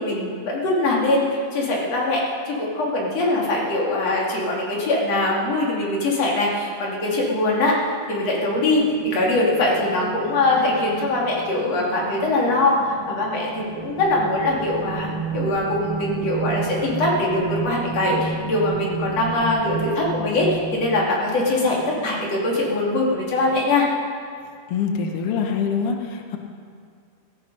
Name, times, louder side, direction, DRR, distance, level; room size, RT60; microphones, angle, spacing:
voice 1, 0.0-2.2 2.5-7.8 8.1-23.9, left 2 dB, 45° left, -3 dB, 3.5 m, -22 dB
sound 1, 8.5-23.7, right 6 dB, 55° right, 1.8 m, -40 dB
sound 2, 13.6-21.3, right 4 dB, 70° right, 1.5 m, -31 dB
voice 2, 24.7-26.4, left 6 dB, 80° left, 3 dB, 1.2 m, -24 dB
18.0 x 14.0 x 5.5 m, 2.2 s
omnidirectional pair, 4.4 m